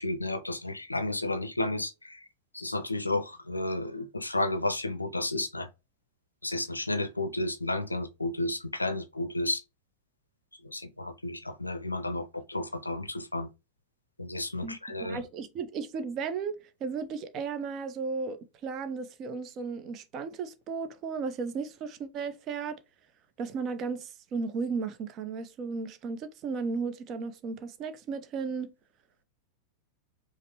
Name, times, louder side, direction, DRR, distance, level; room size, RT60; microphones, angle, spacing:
voice 1, 0.0-2.3 2.5-5.7 6.4-9.6 10.6-13.5 14.2-15.2, left 2 dB, 85° left, 0.4 m, -32 dB
voice 2, 14.6-16.5 16.8-22.8 23.4-28.7, right 5 dB, 35° right, 0.5 m, -35 dB
5.0 x 2.0 x 2.8 m
figure-of-eight pair, 90°, 0 cm